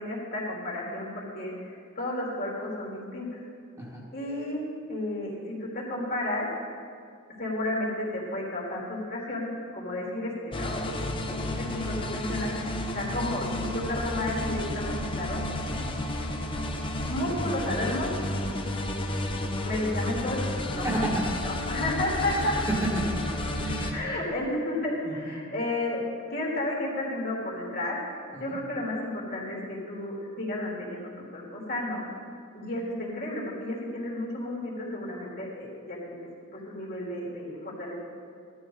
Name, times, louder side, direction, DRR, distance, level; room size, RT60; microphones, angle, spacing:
voice 1, 0.0-3.4 4.1-6.7 7.4-15.4 17.1-18.1 19.6-20.4 20.7-21.0 21.5-22.6 23.9-32.0 32.5-38.0, left 1 dB, 45° left, -4 dB, 3.4 m, -32 dB
sound 1, 10.5-23.9, left 1 dB, 25° left, 0.9 m, -32 dB
voice 2, 20.8-21.5 22.2-23.3 23.6-24.1 25.0-25.3 28.3-28.6, right 1 dB, 15° right, -5 dB, 1.9 m, -32 dB
16.5 x 12.5 x 4.0 m, 2.2 s
head